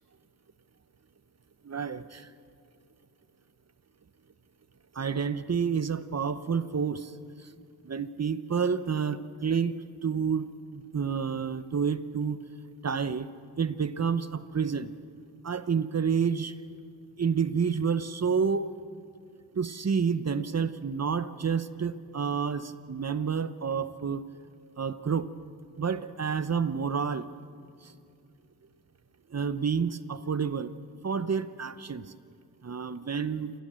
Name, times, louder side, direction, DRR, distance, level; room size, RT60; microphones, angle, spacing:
voice 1, 1.6-2.3 4.9-7.1 7.4-7.5 7.8-12.4 12.8-13.3 13.6-14.9 15.4-16.5 17.2-18.7 19.5-24.2 24.8-25.3 25.8-27.2 27.8-27.9 29.3-30.7 31.0-32.1 32.6-33.5, right 6 dB, 40° right, 13 dB, 0.8 m, -29 dB
28.0 x 16.0 x 7.6 m, 2.3 s
cardioid pair, 75°, 40 cm